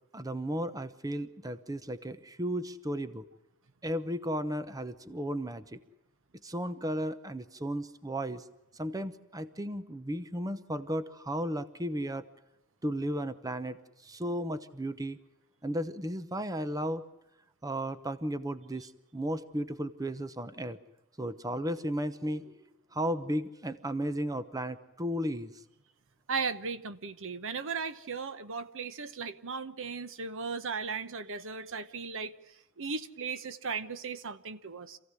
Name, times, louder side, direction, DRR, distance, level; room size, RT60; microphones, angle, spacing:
voice 1, 0.1-3.3 3.8-5.8 6.4-8.4 8.8-12.2 12.8-13.8 14.0-15.2 15.6-17.1 17.6-20.8 21.2-22.6 22.9-25.5, equal, 15° right, 0.9 m, -34 dB
voice 2, 26.3-32.3 32.8-35.0, right 5 dB, 60° right, 1.1 m, -36 dB
27.0 x 16.0 x 9.8 m
head